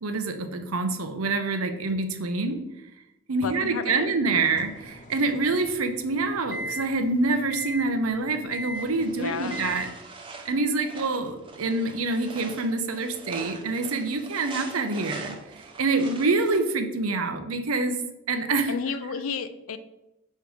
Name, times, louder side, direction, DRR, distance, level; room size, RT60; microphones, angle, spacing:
voice 1, 0.0-2.6 3.3-9.9 10.4-18.0 18.3-18.7, right 3 dB, 90° right, 7 dB, 0.7 m, -26 dB
voice 2, 3.4-4.1 9.2-9.6 18.7-19.8, left 5 dB, 75° left, 11 dB, 0.5 m, -32 dB
sound 1, 4.4-9.9, equal, 40° left, 0.7 m, -39 dB
sound 2, 8.7-16.6, right 3 dB, 25° right, 0.8 m, -43 dB
6.6 x 3.2 x 4.8 m, 0.94 s
head